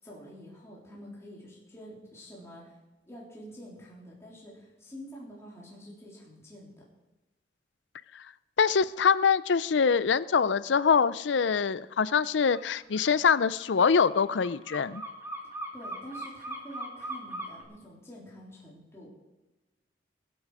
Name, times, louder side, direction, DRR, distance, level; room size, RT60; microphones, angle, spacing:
voice 1, 0.0-2.8 3.0-6.7 15.7-19.1, equal, 15° left, -5 dB, 3.5 m, -47 dB
voice 2, 8.6-15.0, left 6 dB, 85° left, 17 dB, 0.5 m, -24 dB
sound 1, 12.5-12.7 12.9-17.6, right 1 dB, 15° right, 2.2 m, -39 dB
21.5 x 8.6 x 4.9 m, 1.0 s
head